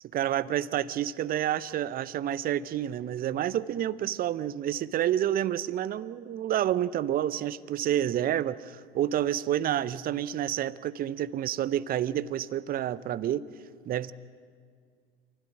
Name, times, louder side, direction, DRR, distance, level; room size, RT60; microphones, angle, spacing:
voice 1, 0.1-13.5 13.9-14.1, right 11 dB, 30° right, 0.7 m, -29 dB
27.5 x 14.5 x 7.7 m
figure-of-eight pair, 80°, 31 cm